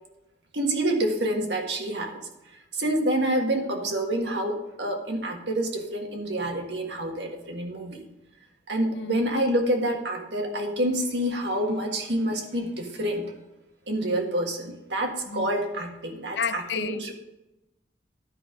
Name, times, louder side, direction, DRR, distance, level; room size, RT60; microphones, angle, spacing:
voice 1, 0.5-2.2 2.7-8.0 8.7-13.3 13.9-17.1, right 1 dB, 85° right, 1.6 m, -27 dB
voice 2, 8.9-9.2 14.0-14.3 15.3-15.5 16.3-17.1, left 6 dB, 85° left, 0.5 m, -32 dB
12.0 x 5.3 x 5.0 m
head